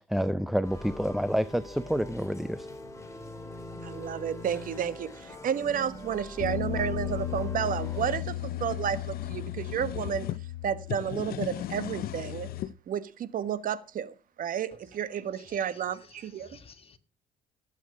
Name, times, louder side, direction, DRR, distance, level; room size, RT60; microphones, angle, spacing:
voice 1, 0.0-2.7, equal, ahead, 0.5 m, -28 dB
sound 1, 0.6-8.1, left 1 dB, 15° left, 3.3 m, -43 dB
voice 2, 3.8-10.3 10.6-12.5 12.9-16.5, right 8 dB, 55° right, 1.3 m, -31 dB
sound 2, 6.4-12.6, left 11 dB, 85° left, 1.7 m, -36 dB
sound 3, 7.3-10.4 10.8-12.7, left 12 dB, 60° left, 0.6 m, -38 dB
voice 3, 15.3-17.0, left 6 dB, 35° left, 1.5 m, -55 dB
16.0 x 8.4 x 5.0 m
cardioid pair, 110°, 17 cm